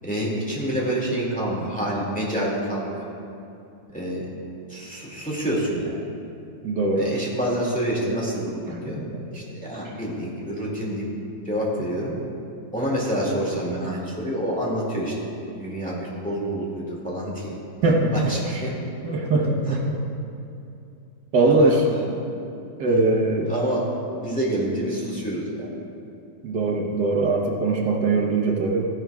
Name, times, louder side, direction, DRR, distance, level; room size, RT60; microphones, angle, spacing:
voice 1, 0.0-3.0 3.9-4.3 4.7-6.0 7.0-9.0 9.3-11.0 11.4-12.1 12.7-15.1 15.4-17.5 18.1-18.8 19.6-19.8 21.4-22.2 22.8-23.8 24.1-25.7, right 1 dB, 5° left, -5 dB, 2.0 m, -27 dB
voice 2, 6.6-7.1 8.7-8.8 9.1-9.2 17.8-18.3 19.0-20.0 21.3-21.8 22.8-23.5 26.4-28.9, right 3 dB, 85° right, -1 dB, 1.7 m, -21 dB
15.0 x 10.5 x 2.3 m, 2.6 s
omnidirectional pair, 1.8 m